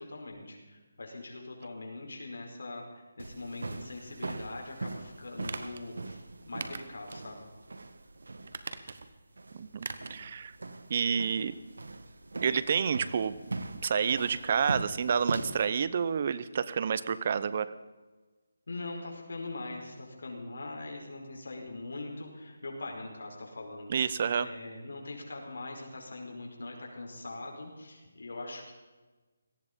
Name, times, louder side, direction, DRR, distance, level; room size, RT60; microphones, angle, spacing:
voice 1, 0.0-7.5 18.7-23.9 24.4-28.7, left 2 dB, 75° left, 1 dB, 5.1 m, -42 dB
sound 1, 3.2-15.7, right 2 dB, 90° right, 1.5 m, -41 dB
sound 2, 5.4-5.8 6.6-7.2 7.6-7.7 8.4-9.2 9.8-10.2 10.5-10.6, right 4 dB, 55° right, 1.3 m, -41 dB
voice 2, 9.5-10.5 10.9-11.5 12.4-13.6 13.8-17.7 23.9-24.5, right 6 dB, 35° right, 15 dB, 0.8 m, -29 dB
18.0 x 14.5 x 5.3 m, 1.3 s
hypercardioid pair, 170°, 0 cm